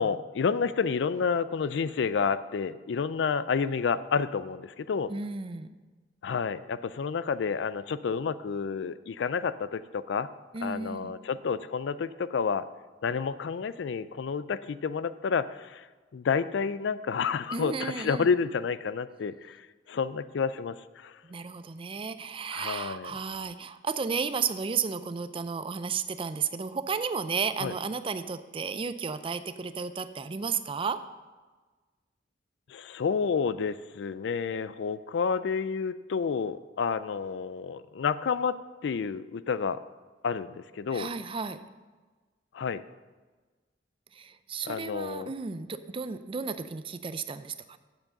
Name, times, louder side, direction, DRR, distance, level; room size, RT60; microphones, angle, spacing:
voice 1, 0.0-5.1 6.2-10.3 10.6-12.6 13.0-15.9 16.1-21.2 22.5-23.2 27.6-27.7 32.7-38.6 38.8-39.8 40.2-41.1 42.5-42.8 44.6-45.3, left 5 dB, 65° left, 15 dB, 0.4 m, -30 dB
voice 2, 5.1-5.7 10.5-11.2 17.5-18.3 21.3-31.0 40.9-41.6 44.1-47.8, right 5 dB, 30° right, 12 dB, 0.4 m, -33 dB
7.8 x 7.3 x 6.4 m, 1.3 s
head